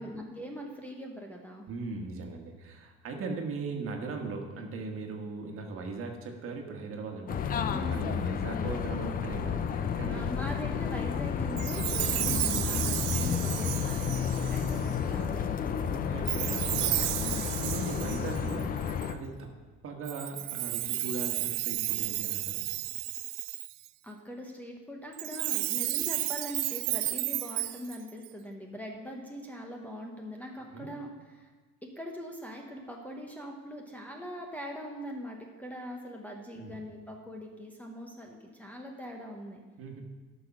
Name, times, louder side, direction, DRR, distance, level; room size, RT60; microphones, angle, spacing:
voice 1, 0.0-1.6 7.7-8.2 10.1-16.0 17.2-17.6 24.0-31.5 31.8-39.6, equal, 5° left, -1 dB, 0.9 m, -42 dB
voice 2, 1.7-10.3 11.7-12.1 15.8-18.8 19.1-19.5 19.8-22.6 30.7-30.9 36.6-36.8 39.8-40.0, right 3 dB, 45° right, 3 dB, 1.5 m, -39 dB
sound 1, 7.3-19.1, left 7 dB, 30° left, 0.5 m, -31 dB
Chime, 11.6-14.9 16.3-19.1 20.0-23.9 25.1-28.3, right 18 dB, 85° right, 0.6 m, -33 dB
12.5 x 6.3 x 5.9 m, 1.4 s
cardioid pair, 155°, 31 cm